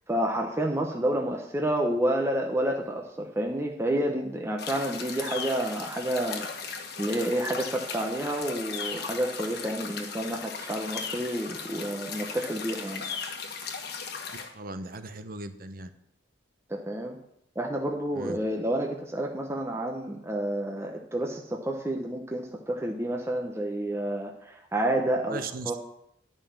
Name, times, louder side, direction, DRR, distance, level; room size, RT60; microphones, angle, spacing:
voice 1, 0.1-13.0 16.7-17.2 17.6-25.4 25.7-25.8, right 1 dB, 15° right, 0 dB, 0.8 m, -29 dB
sound 1, 4.6-14.5, left 5 dB, 55° left, 1.3 m, -37 dB
voice 2, 14.5-15.9 18.1-18.4 25.3-25.7, right 3 dB, 50° right, 10 dB, 0.8 m, -38 dB
11.0 x 5.5 x 7.2 m, 0.76 s
head